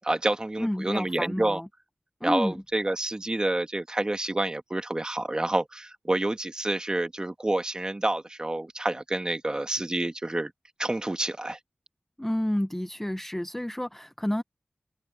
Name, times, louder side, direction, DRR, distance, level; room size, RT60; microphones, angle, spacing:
voice 1, 0.0-1.6 2.2-10.5 10.8-11.6, right 1 dB, 25° right, 1.6 m, -28 dB
voice 2, 0.6-1.7 2.2-2.5 12.2-14.4, left 1 dB, 10° left, 0.8 m, -29 dB
wide cardioid pair, 80°, 3 cm